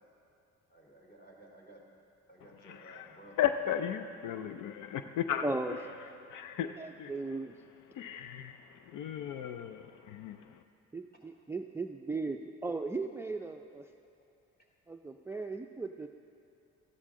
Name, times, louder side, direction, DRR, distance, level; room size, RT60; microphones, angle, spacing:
voice 1, 0.7-1.8 2.3-3.4, right 1 dB, 35° left, -1 dB, 2.8 m, -55 dB
voice 2, 2.6-5.4 6.3-7.1 8.0-10.4, left 10 dB, 85° left, 8 dB, 0.5 m, -35 dB
voice 3, 5.4-5.8 6.8-7.6 10.9-13.8 14.9-16.1, right 3 dB, 10° right, 6 dB, 0.4 m, -37 dB
14.0 x 12.5 x 3.7 m, 2.6 s
cardioid pair, 90°, 30 cm